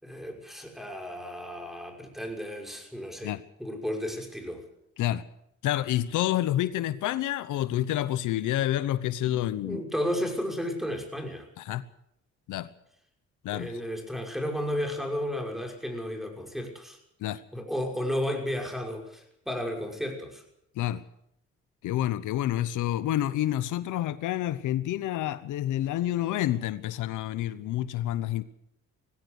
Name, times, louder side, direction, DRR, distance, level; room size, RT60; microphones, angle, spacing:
voice 1, 0.0-3.3 3.6-4.6 9.6-11.5 13.5-17.0 17.5-20.4, equal, ahead, 3 dB, 5.9 m, -33 dB
voice 2, 5.6-9.8 11.6-11.8 12.5-12.7 13.4-13.7 17.2-17.4 20.8-21.0 21.8-28.4, left 13 dB, 85° left, 15 dB, 1.0 m, -28 dB
20.0 x 16.5 x 8.3 m, 0.74 s
cardioid pair, 90°, 30 cm